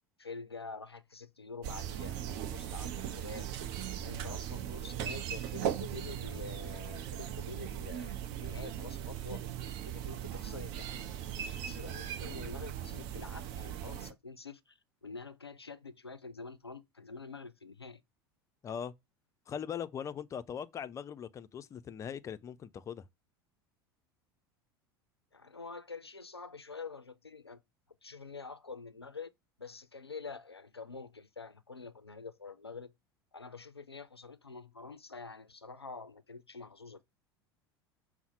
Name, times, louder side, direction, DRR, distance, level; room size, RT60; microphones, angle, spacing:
voice 1, 0.2-3.5 4.0-9.5 9.8-18.0 25.3-27.6 28.0-29.3 29.6-32.9 33.3-37.1, left 4 dB, 90° left, 0.4 m, -47 dB
sound 1, 1.6-14.1, right 10 dB, 50° right, 0.6 m, -39 dB
voice 2, 18.6-18.9 19.5-23.1, left 8 dB, 25° left, 0.4 m, -40 dB
5.5 x 2.0 x 4.3 m
figure-of-eight pair, 75°, 13 cm